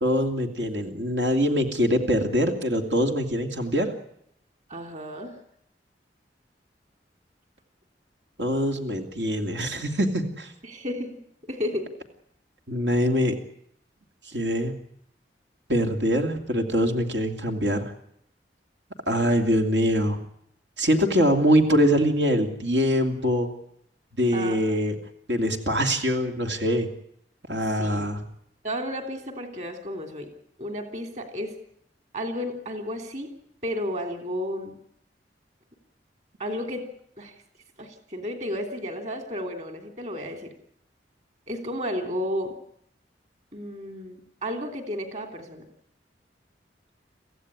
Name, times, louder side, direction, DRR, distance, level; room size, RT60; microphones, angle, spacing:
voice 1, 0.0-3.9 8.4-10.5 12.7-13.3 14.3-14.7 15.7-17.9 19.1-20.2 20.8-23.5 24.2-24.9 25.3-26.9 27.5-28.2, equal, 90° right, 4 dB, 2.8 m, -23 dB
voice 2, 4.7-5.3 10.6-11.2 11.5-11.9 24.3-24.8 27.8-28.1 28.6-30.3 30.6-31.5 32.1-33.3 33.6-34.8 36.4-36.8 37.2-37.3 37.8-40.5 41.5-42.5 43.5-45.7, equal, 40° right, 5 dB, 3.2 m, -32 dB
25.0 x 15.5 x 9.8 m, 0.72 s
head